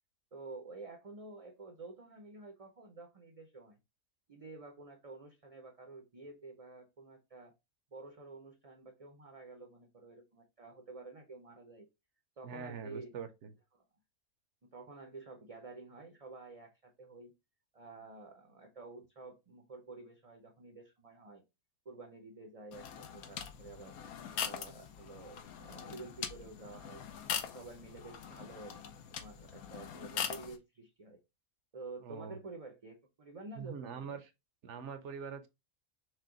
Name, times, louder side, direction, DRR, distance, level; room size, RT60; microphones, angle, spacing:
voice 1, 0.3-3.8 4.3-7.5 7.9-11.9 12.4-13.1 13.7-13.8 14.6-17.3 17.7-21.4 21.8-24.0 24.3-27.0 27.4-28.8 29.1-31.2 31.7-34.2, right 3 dB, 40° right, 0.5 m, -50 dB
voice 2, 12.4-13.5 32.0-32.4 33.6-34.3 34.6-35.5, right 6 dB, 65° right, 0.9 m, -43 dB
sound 1, 22.7-30.6, left 8 dB, 85° left, 1.1 m, -42 dB
6.4 x 2.2 x 3.7 m
omnidirectional pair, 1.5 m